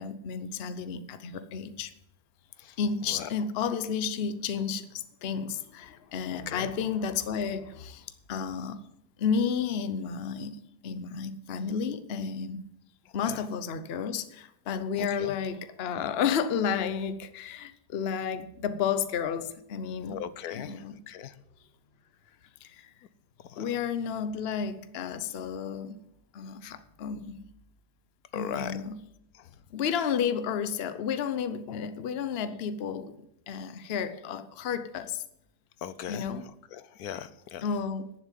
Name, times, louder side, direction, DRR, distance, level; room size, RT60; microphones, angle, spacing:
voice 1, 0.0-1.9 2.8-8.8 9.2-12.6 13.1-20.2 20.5-21.0 22.6-22.9 23.5-26.0 26.3-27.4 28.3-29.0 29.7-33.1 33.5-35.2 36.1-36.5 37.6-38.1, left 7 dB, 45° left, 0.9 m, -32 dB
voice 2, 6.3-6.7 13.3-13.4 15.0-15.3 20.1-21.3 23.5-23.7 28.3-28.8 29.4-29.5 35.8-36.3 36.7-37.7, left 9 dB, 70° left, 1.2 m, -38 dB
10.5 x 7.4 x 9.2 m
omnidirectional pair, 1.7 m